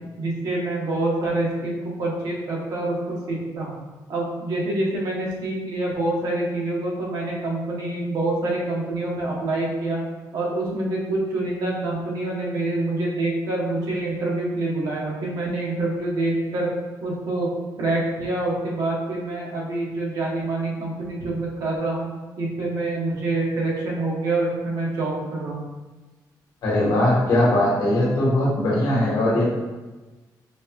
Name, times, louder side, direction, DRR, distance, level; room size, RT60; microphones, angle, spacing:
voice 1, 0.2-3.7 4.1-10.0 10.3-16.7 17.0-17.5 17.8-22.1 22.4-25.6, right 2 dB, 65° right, -3 dB, 1.0 m, -26 dB
voice 2, 26.6-29.4, left 1 dB, 70° left, -5 dB, 1.3 m, -20 dB
5.1 x 3.0 x 2.3 m, 1.2 s
cardioid pair, 170°, 7 cm